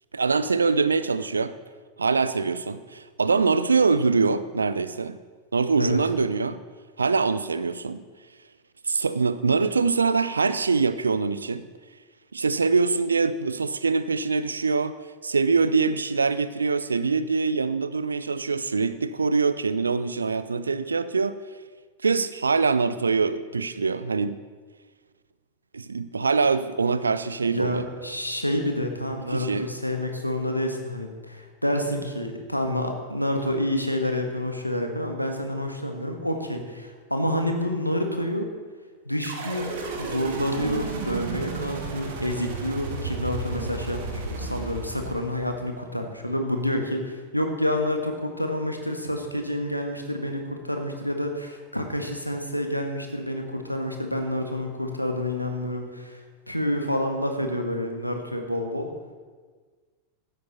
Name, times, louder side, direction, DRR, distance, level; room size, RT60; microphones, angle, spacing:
voice 1, 0.1-1.5 2.0-5.2 5.5-6.6 7.0-8.0 8.9-11.7 12.3-15.0 15.2-21.4 22.0-24.4 25.7-27.9 29.3-29.7, right 4 dB, 75° right, 15 dB, 0.6 m, -24 dB
voice 2, 27.4-38.5 39.0-56.2 56.5-58.9, left 1 dB, 90° left, 4 dB, 1.6 m, -28 dB
sound 1, 39.2-45.7, right 3 dB, 55° right, 2.1 m, -33 dB
15.5 x 12.5 x 4.2 m, 1.5 s
figure-of-eight pair, 90°, 0 cm